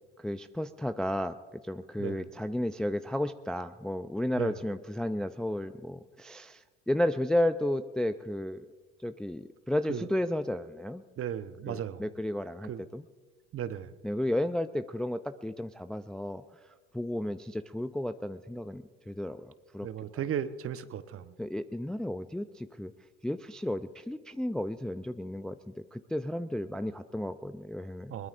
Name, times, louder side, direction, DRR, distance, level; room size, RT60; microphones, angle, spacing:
voice 1, 0.2-1.4 1.6-8.7 9.0-11.0 11.7-13.0 14.0-16.4 16.9-19.9 21.4-22.9 23.2-28.1, left 1 dB, ahead, 10 dB, 0.4 m, -33 dB
voice 2, 11.2-12.0 12.7-12.8 13.5-13.9 19.8-21.3 28.1-28.3, right 9 dB, 40° right, 12 dB, 0.9 m, -35 dB
22.0 x 20.5 x 2.5 m, 1.4 s
hypercardioid pair, 70°, 35 cm